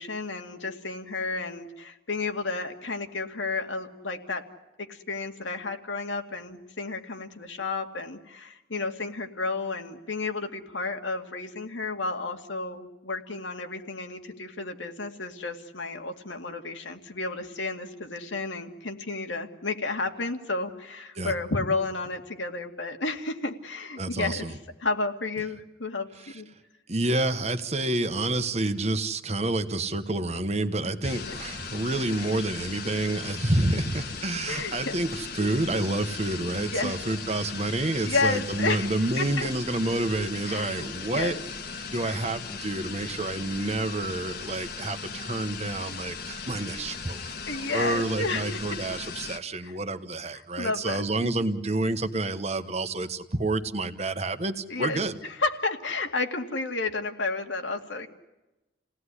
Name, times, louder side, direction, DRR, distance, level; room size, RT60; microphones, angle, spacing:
voice 1, 0.0-4.4 4.8-26.1 26.3-26.5 31.2-31.3 34.5-34.9 36.6-37.0 38.1-39.5 40.5-40.7 41.1-41.4 42.0-42.2 47.5-48.8 49.6-49.7 50.3-51.3 54.7-58.1, left 3 dB, 90° left, 5 dB, 2.3 m, -32 dB
voice 2, 24.0-24.5 26.9-41.4 41.9-55.1, right 2 dB, 35° right, 9 dB, 1.2 m, -29 dB
sound 1, 31.0-49.4, left 5 dB, 55° left, 1.6 m, -38 dB
29.5 x 18.0 x 9.9 m, 1.0 s
head